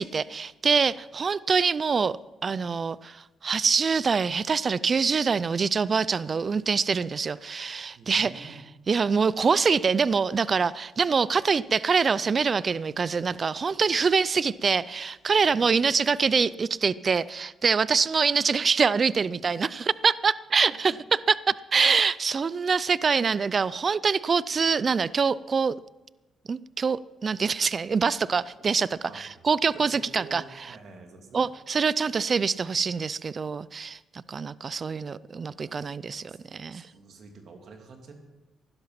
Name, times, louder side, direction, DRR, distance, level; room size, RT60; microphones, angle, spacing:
voice 1, 0.0-8.5 8.9-20.9 21.3-25.7 26.5-30.4 31.3-34.0 34.3-36.9, right 5 dB, 40° right, 19 dB, 0.4 m, -25 dB
voice 2, 7.9-8.6 15.3-15.8 19.8-19.9 29.1-29.5 29.7-31.4 35.5-36.4 36.7-38.1, right 4 dB, 60° right, 4 dB, 2.6 m, -48 dB
16.0 x 11.5 x 5.8 m, 1.1 s
cardioid pair, 90°, 0 cm